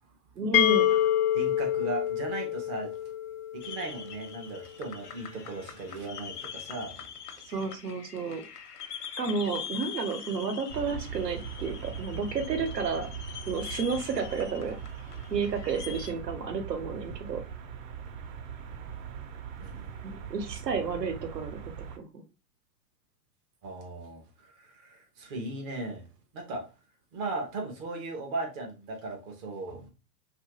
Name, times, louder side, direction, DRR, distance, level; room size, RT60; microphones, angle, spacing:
voice 1, 0.4-0.9 7.5-8.4 9.2-13.1 13.5-14.8 15.3-17.4 20.0-21.6 22.0-22.2, right 5 dB, 90° right, 0.9 m, -31 dB
sound 1, 0.5-4.3, left 12 dB, 40° left, 0.5 m, -27 dB
voice 2, 1.3-3.0 3.5-7.5 19.6-20.0 23.6-26.1 26.3-26.7 27.1-29.9, right 2 dB, 20° right, 0.4 m, -37 dB
sound 2, 3.6-16.1, left 8 dB, 75° left, 0.8 m, -43 dB
sound 3, 10.7-22.0, right 7 dB, 55° right, 0.7 m, -41 dB
2.8 x 2.5 x 2.8 m
hypercardioid pair, 115°, 47 cm